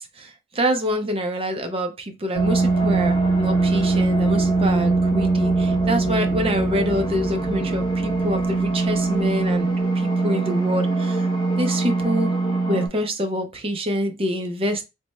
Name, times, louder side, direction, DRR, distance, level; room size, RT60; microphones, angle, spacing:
voice 1, 0.2-11.3 11.6-12.3 12.7-14.8, equal, 30° right, 0.5 m, -26 dB
sound 1, 2.3-12.9, right 3 dB, 25° left, 0.9 m, -22 dB
3.3 x 2.0 x 4.2 m
head